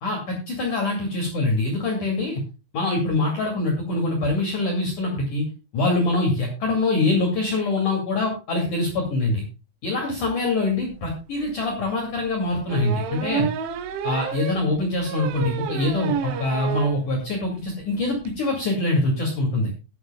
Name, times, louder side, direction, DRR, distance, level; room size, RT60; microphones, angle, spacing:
voice 1, 0.0-2.4 2.7-5.4 5.7-9.4 9.8-13.5 14.0-19.7, left 2 dB, 50° left, 0 dB, 3.3 m, -24 dB
sound 1, 10.9-11.0 11.4-11.5 12.7-17.0 17.4-17.5 17.7-17.8 18.0-18.3, right 7 dB, 80° right, 3.5 m, -30 dB
20.0 x 8.0 x 2.2 m, 0.31 s
omnidirectional pair, 5.3 m